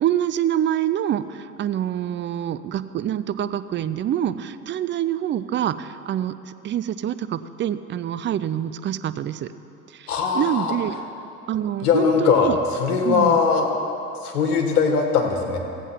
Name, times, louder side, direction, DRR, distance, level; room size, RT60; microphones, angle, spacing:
voice 1, 0.0-9.5 9.9-10.1 10.3-11.0 11.5-12.6 13.0-13.4, right 10 dB, 25° right, 14 dB, 0.5 m, -26 dB
voice 2, 10.1-10.7 11.8-13.7 14.2-15.6, left 5 dB, 80° left, 3 dB, 1.8 m, -20 dB
16.0 x 8.1 x 5.9 m, 2.8 s
hypercardioid pair, 80°, 45 cm